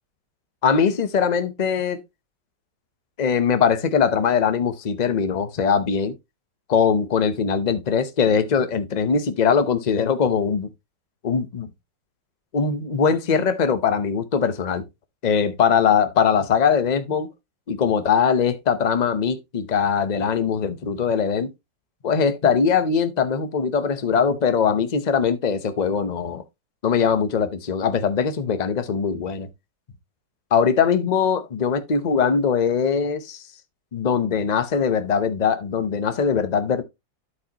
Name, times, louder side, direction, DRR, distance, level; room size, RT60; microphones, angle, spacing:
voice 1, 0.6-2.0 3.2-6.2 6.7-10.7 11.2-11.7 12.5-14.8 15.2-17.3 17.7-21.5 22.0-26.4 26.8-29.5 30.5-33.4 33.9-36.8, left 6 dB, 45° left, 0.5 m, -21 dB
12.5 x 4.9 x 2.8 m
omnidirectional pair, 2.0 m